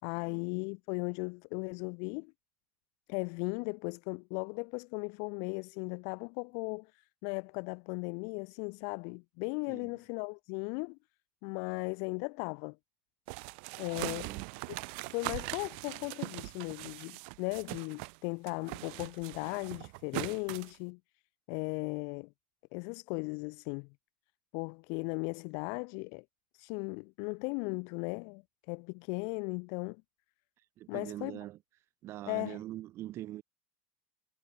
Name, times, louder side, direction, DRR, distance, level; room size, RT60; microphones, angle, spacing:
voice 1, 0.0-2.3 3.1-11.0 11.4-12.8 13.8-14.3 15.1-21.0 21.5-22.3 22.7-23.9 24.5-26.2 26.5-28.4 28.7-30.0 30.9-31.4 32.3-32.6, left 40 dB or more, 65° left, 5.0 m, -37 dB
voice 2, 9.7-10.0 13.9-14.4 30.8-31.6 32.0-33.4, right 14 dB, 45° right, 5.5 m, -43 dB
sound 1, 13.3-18.2 18.5-20.8, right 35 dB, 70° right, 2.0 m, -41 dB
supercardioid pair, 120°, 6 cm